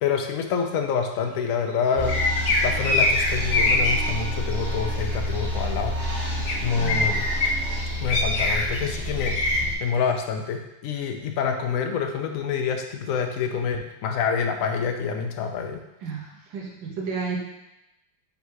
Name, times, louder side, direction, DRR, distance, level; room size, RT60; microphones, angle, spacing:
voice 1, 0.0-2.2 2.6-6.4 6.6-7.3 8.0-9.4 9.8-15.8, left 6 dB, 75° left, 4 dB, 0.7 m, -27 dB
sound 1, 2.0-9.7, equal, 55° right, 1.7 m, -29 dB
sound 2, 2.1-3.9 6.5-6.6 6.8-7.5 8.1-8.8 9.2-9.6, left 3 dB, 55° left, 1.0 m, -23 dB
voice 2, 6.8-7.1 16.0-17.4, right 5 dB, 70° right, -2 dB, 1.9 m, -32 dB
5.3 x 4.1 x 4.7 m, 0.91 s
omnidirectional pair, 2.1 m